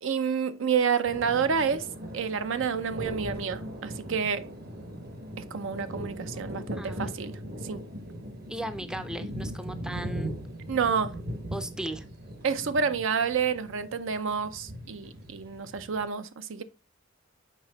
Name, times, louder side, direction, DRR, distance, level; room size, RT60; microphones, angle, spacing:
voice 1, 0.0-1.9 2.1-4.5 5.4-7.8 10.7-11.1 12.4-16.6, right 6 dB, 65° right, 0.5 m, -29 dB
sound 1, 1.0-16.0, equal, 50° right, 1.2 m, -39 dB
voice 2, 6.8-7.1 8.5-10.4 11.5-12.1, right 1 dB, 5° right, 0.5 m, -37 dB
6.1 x 4.3 x 3.9 m
head